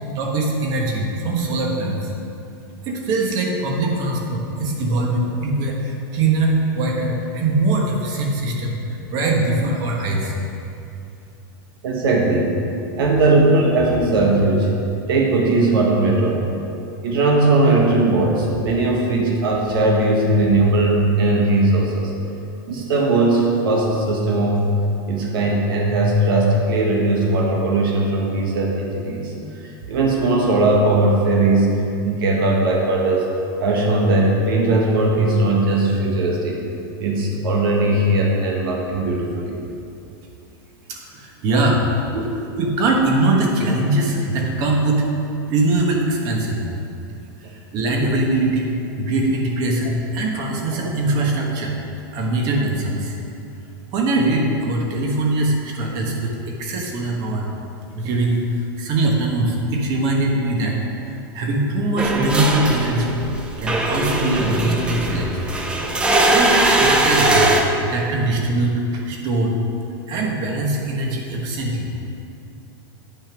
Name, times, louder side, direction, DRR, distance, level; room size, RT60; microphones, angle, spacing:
voice 1, 0.1-2.1 2.8-10.4 40.9-41.8 42.6-45.1 45.5-46.7 47.4-51.8 52.1-53.1 53.9-57.5 57.9-58.4 58.8-60.7 61.3-63.2 63.6-65.4 66.2-69.5 70.1-72.0, right 2 dB, 30° right, 0 dB, 1.2 m, -22 dB
voice 2, 11.8-12.5 12.9-14.7 15.1-16.4 17.0-22.1 22.7-24.6 25.1-29.3 29.6-31.7 32.0-33.3 33.6-36.6 37.0-39.5 42.1-42.2 50.7-50.8, right 2 dB, 70° right, -1 dB, 1.4 m, -18 dB
sound 1, 62.0-67.6, right 2 dB, 10° right, 0.5 m, -20 dB
9.0 x 5.3 x 6.1 m, 2.7 s
supercardioid pair, 170°, 12 cm